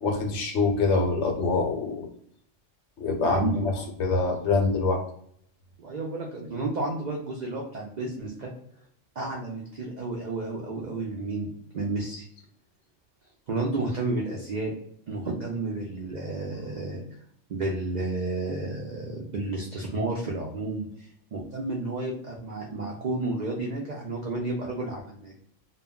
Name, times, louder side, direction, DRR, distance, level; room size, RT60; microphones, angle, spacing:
voice 1, 0.0-2.1 3.0-3.7 4.0-5.0, left 3 dB, 70° left, 2 dB, 0.9 m, -25 dB
voice 2, 3.2-3.7 5.8-8.5 9.2-12.3 13.5-14.7 15.1-17.0 17.5-20.9 21.3-25.4, right 2 dB, 65° right, -2 dB, 0.4 m, -31 dB
2.2 x 2.1 x 3.5 m, 0.66 s
omnidirectional pair, 1.3 m